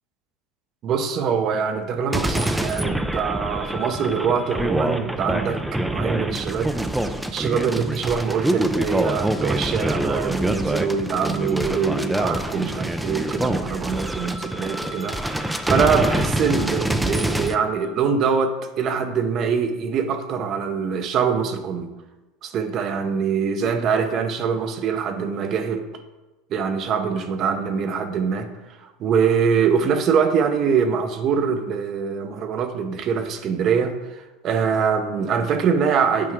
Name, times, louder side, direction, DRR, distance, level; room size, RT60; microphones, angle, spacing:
voice 1, 0.8-21.9 22.4-25.9 26.5-36.3, right 6 dB, 45° right, 8 dB, 0.8 m, -24 dB
sound 1, 2.1-17.6, right 1 dB, 5° right, 0.4 m, -25 dB
8.6 x 4.7 x 3.6 m, 1.1 s
supercardioid pair, 110°, 0 cm